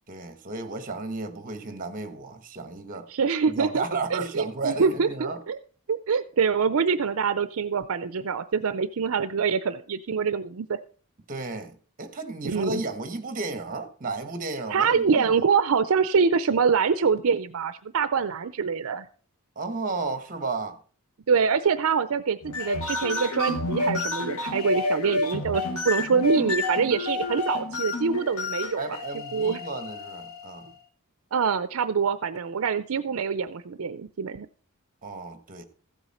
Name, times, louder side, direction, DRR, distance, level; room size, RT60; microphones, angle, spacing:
voice 1, 0.1-3.1 3.5-5.4 11.3-15.3 19.5-20.8 28.8-30.7 35.0-35.6, right 3 dB, 40° right, 1.3 m, -33 dB
voice 2, 3.1-3.8 4.1-5.6 5.9-10.8 12.4-12.8 14.7-19.1 21.3-29.0 29.3-29.6 31.3-34.5, right 5 dB, 70° right, 0.5 m, -25 dB
sound 1, 22.4-30.7, left 3 dB, 85° left, 1.6 m, -30 dB
15.0 x 8.1 x 4.2 m
head